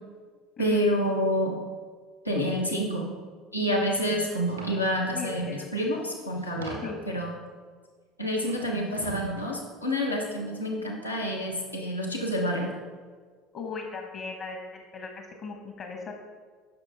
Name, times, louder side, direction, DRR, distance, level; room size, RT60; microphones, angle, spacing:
voice 1, 0.6-1.6 2.2-3.1 3.5-7.3 8.2-12.7, equal, 90° left, -2 dB, 1.1 m, -28 dB
sound 1, 4.5-4.7 5.6-5.7 5.9-7.1 8.4-9.4, right 3 dB, 85° right, 1.6 m, -41 dB
voice 2, 5.0-5.7 6.8-7.0 13.5-16.1, left 4 dB, 45° left, 3 dB, 1.1 m, -38 dB
10.0 x 6.3 x 3.4 m, 1.5 s
figure-of-eight pair, 65°, 0 cm